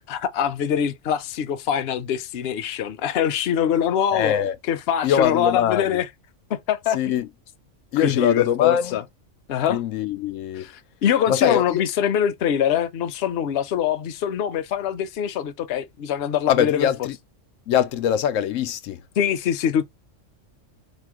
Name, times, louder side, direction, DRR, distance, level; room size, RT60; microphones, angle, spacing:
voice 1, 0.1-4.3 4.7-6.1 6.5-7.2 8.0-9.0 9.5-9.8 10.6-10.7 11.0-16.9 19.2-19.9, left 9 dB, 60° left, 0.8 m, -23 dB
voice 2, 4.1-4.6 5.0-6.0 6.9-7.3 7.9-9.0 9.7-10.7 11.3-11.8 16.5-17.2 17.7-19.0, left 9 dB, 90° left, 1.0 m, -23 dB
5.0 x 2.2 x 4.7 m
omnidirectional pair, 1.3 m